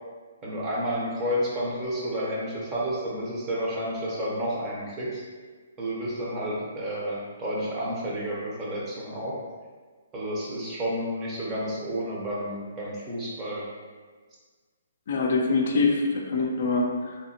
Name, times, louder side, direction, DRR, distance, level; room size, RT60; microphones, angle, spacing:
voice 1, 0.4-5.2 5.8-9.4 10.1-13.7, equal, 20° right, -5 dB, 0.6 m, -30 dB
voice 2, 15.1-17.2, left 3 dB, 60° left, 0 dB, 0.4 m, -24 dB
2.8 x 2.0 x 2.8 m, 1.5 s
hypercardioid pair, 150°, 0 cm